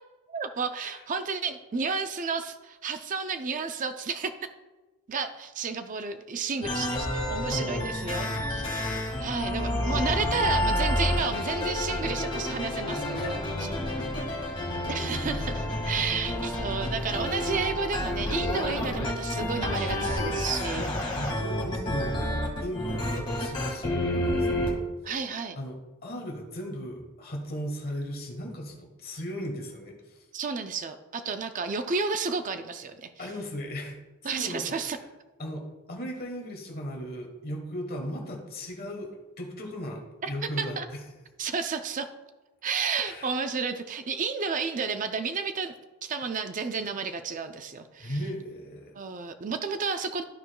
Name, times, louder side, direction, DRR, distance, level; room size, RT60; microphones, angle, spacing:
voice 1, 0.3-4.3 5.1-13.4 14.9-20.9 25.0-25.6 30.3-33.3 34.2-35.0 40.2-40.3 40.6-40.9 41.4-42.1 42.6-45.7 46.0-48.2 49.0-50.2, right 5 dB, 35° right, 8 dB, 0.4 m, -32 dB
sound 1, 6.6-24.7, left 1 dB, 20° left, 1.7 m, -29 dB
voice 2, 9.6-10.0 13.2-13.3 14.0-14.5 19.6-19.7 20.7-24.9 25.5-30.2 33.2-34.0 34.2-35.0 35.4-41.0 43.0-43.3 48.0-48.9, equal, 45° left, 2 dB, 1.2 m, -37 dB
13.0 x 4.7 x 2.2 m, 1.1 s
head